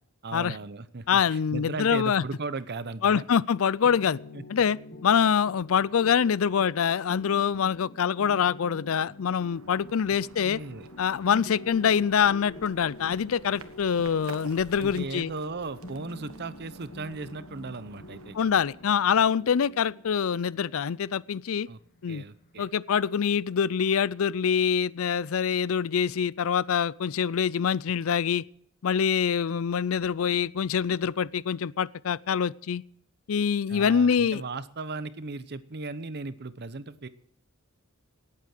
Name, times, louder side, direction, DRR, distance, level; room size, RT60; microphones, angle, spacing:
voice 1, 0.2-3.2 4.3-4.4 10.4-10.9 14.8-18.4 21.7-21.8 22.1-22.7 33.7-37.1, right 3 dB, 50° right, 0.9 m, -37 dB
voice 2, 1.1-2.2 3.0-4.2 4.5-10.6 11.0-15.3 18.3-21.7 22.0-22.2 22.6-28.4 28.8-32.8 33.3-34.4, left 7 dB, 70° left, 0.4 m, -25 dB
sound 1, 3.8-23.4, left 1 dB, 50° left, 1.7 m, -47 dB
sound 2, 8.9-19.6, right 3 dB, 80° right, 1.4 m, -51 dB
18.5 x 8.5 x 6.5 m
head